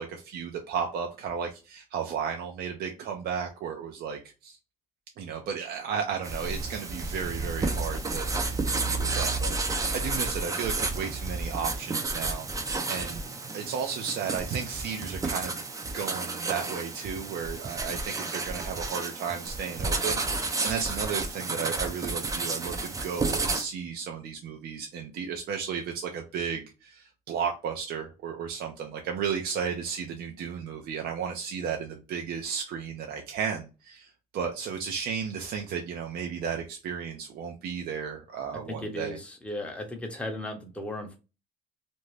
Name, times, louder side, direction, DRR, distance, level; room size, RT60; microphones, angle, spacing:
voice 1, 0.0-4.6 5.2-13.2 13.5-15.6 15.9-39.2, right 7 dB, 65° right, 0.6 m, -34 dB
sound 1, 6.2-23.6, right 3 dB, 20° right, 0.5 m, -31 dB
voice 2, 38.7-41.2, left 1 dB, 5° left, 0.8 m, -36 dB
2.6 x 2.2 x 3.2 m
cardioid pair, 110°, 17 cm